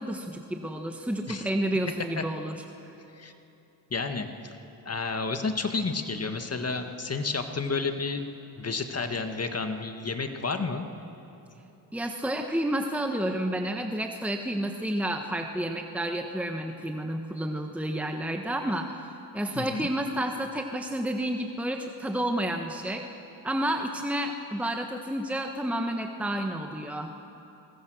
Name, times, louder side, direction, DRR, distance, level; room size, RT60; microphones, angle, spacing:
voice 1, 0.0-2.6 11.9-19.1 19.3-23.1 23.4-27.1, right 1 dB, 5° right, 4 dB, 1.4 m, -30 dB
voice 2, 3.9-4.5 4.9-8.2 8.6-10.9 19.6-19.9, left 4 dB, 30° left, 6 dB, 1.9 m, -31 dB
28.0 x 22.0 x 6.4 m, 3.0 s
supercardioid pair, 65°, 46 cm